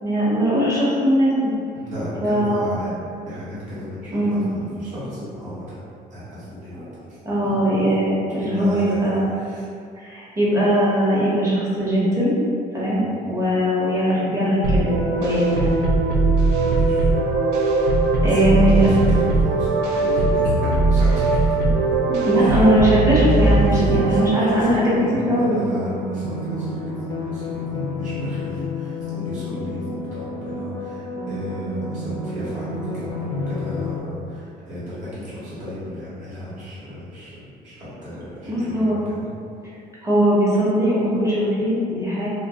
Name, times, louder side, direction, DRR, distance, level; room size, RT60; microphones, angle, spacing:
voice 1, 0.0-1.5 2.2-2.7 4.1-4.5 7.2-9.2 10.0-12.3 12.7-15.8 18.2-18.8 22.1-24.9 25.3-25.6 38.4-39.0 40.0-42.3, equal, 20° right, -8 dB, 1.1 m, -20 dB
voice 2, 1.7-5.8 6.1-6.8 8.4-9.1 9.3-9.7 12.9-13.2 16.6-17.1 18.2-21.5 22.3-22.7 23.7-39.2, left 1 dB, 50° right, -11 dB, 1.4 m, -34 dB
sound 1, 14.6-24.7, right 3 dB, 90° right, 0.4 m, -19 dB
sound 2, 21.9-34.0, left 1 dB, 25° left, 0.4 m, -30 dB
2.4 x 2.0 x 3.6 m, 2.3 s
cardioid pair, 110°, 17 cm